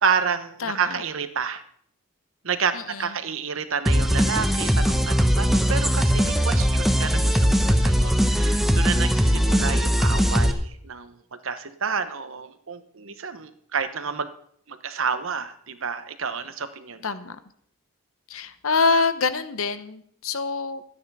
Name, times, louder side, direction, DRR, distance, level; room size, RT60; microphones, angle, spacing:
voice 1, 0.0-1.6 2.4-14.3 14.7-17.2, right 6 dB, 70° right, 10 dB, 1.0 m, -29 dB
voice 2, 0.6-1.0 2.7-3.1 9.3-9.8 17.0-17.4 18.3-20.8, left 4 dB, 75° left, 12 dB, 0.9 m, -26 dB
sound 1, 3.9-10.5, equal, ahead, 0.8 m, -20 dB
13.0 x 9.7 x 5.5 m, 0.63 s
head